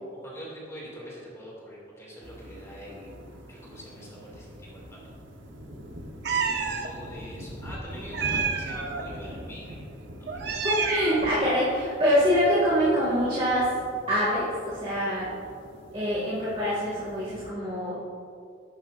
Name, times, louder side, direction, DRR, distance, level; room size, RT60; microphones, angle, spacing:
voice 1, 0.2-5.0 6.2-9.8 10.5-10.6, equal, 15° left, -5 dB, 2.3 m, -44 dB
sound 1, 2.2-17.5, equal, 90° right, 1.1 m, -43 dB
Meow, 6.2-6.9 8.1-9.0 10.3-11.4, right 6 dB, 65° right, 0.7 m, -29 dB
voice 2, 10.6-13.7 14.1-15.3 15.9-18.2, equal, 35° right, -9 dB, 2.1 m, -25 dB
11.5 x 9.1 x 2.5 m, 2.3 s
head